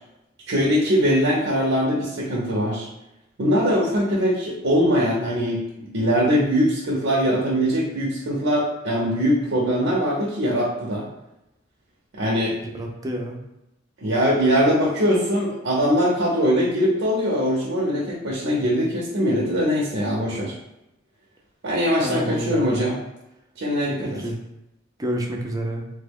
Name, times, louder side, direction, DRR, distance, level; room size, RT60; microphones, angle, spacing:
voice 1, 0.5-2.9 3.4-11.0 12.1-12.5 14.0-20.5 21.6-22.9 23.6-24.2, equal, 80° right, -4 dB, 0.7 m, -22 dB
voice 2, 12.5-13.4 22.0-22.9 24.0-24.4 25.0-25.9, right 1 dB, 20° right, 1 dB, 0.4 m, -29 dB
3.2 x 2.1 x 3.5 m, 0.91 s
head